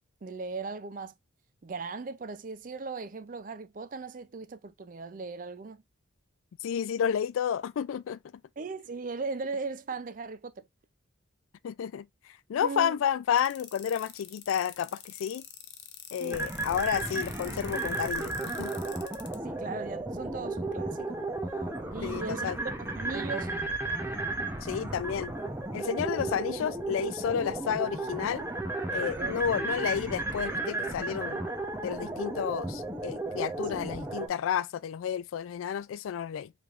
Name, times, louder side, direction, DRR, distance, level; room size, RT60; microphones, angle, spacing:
voice 1, 0.2-1.1 1.6-5.8 8.6-10.7 12.6-13.0 16.2-16.4 19.4-21.3 21.9-23.6 26.3-26.4 29.2-29.4 33.7-33.8, right 4 dB, 40° right, 0.4 m, -38 dB
voice 2, 6.6-8.2 11.6-12.1 12.5-15.4 16.1-18.7 22.0-22.6 24.6-25.3 25.7-28.4 28.9-31.4 31.8-36.5, left 8 dB, 85° left, 0.3 m, -31 dB
sound 1, 13.4-19.4, left 12 dB, 55° left, 0.6 m, -46 dB
sound 2, 16.3-34.3, right 2 dB, 10° right, 0.7 m, -34 dB
4.8 x 3.4 x 2.4 m
head